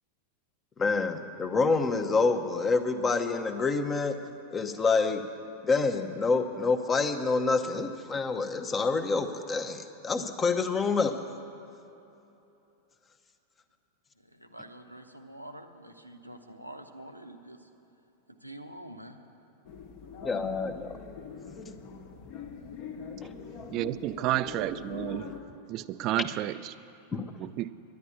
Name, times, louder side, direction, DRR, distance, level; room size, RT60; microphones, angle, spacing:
voice 1, 0.8-4.2 4.5-5.2 5.6-11.2 20.2-20.9 23.2-23.3 27.1-27.3, left 4 dB, 20° left, 0.8 m, -27 dB
voice 2, 14.2-17.7 18.3-19.2, right 1 dB, 90° right, 0.9 m, -46 dB
sound 1, 19.6-25.4, left 6 dB, 45° left, 1.2 m, -43 dB
voice 3, 23.7-25.3 25.7-26.7 27.4-27.7, right 14 dB, 40° right, 0.4 m, -31 dB
11.0 x 11.0 x 8.4 m
figure-of-eight pair, 90°, 0 cm